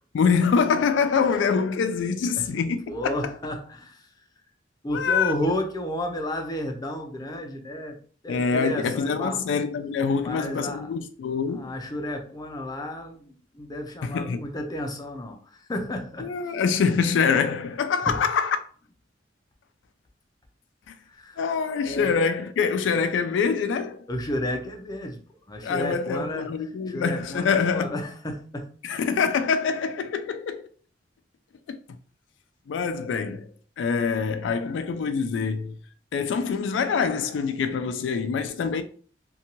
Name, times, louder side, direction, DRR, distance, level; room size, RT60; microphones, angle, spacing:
voice 1, 0.1-3.2 4.9-5.3 8.3-11.8 14.0-14.5 16.2-18.6 20.9-21.0 21.4-24.1 25.6-27.9 28.8-30.7 31.7-31.8 32.7-35.8 36.1-38.8, left 5 dB, 90° left, 0.3 m, -25 dB
voice 2, 2.9-4.1 4.8-8.0 8.2-9.4 10.1-10.9 11.5-16.3 18.1-18.2 21.1-21.4 21.8-22.2 24.1-25.2 25.5-26.5 26.9-28.7, left 1 dB, 20° left, 0.4 m, -32 dB
2.7 x 2.2 x 2.8 m
head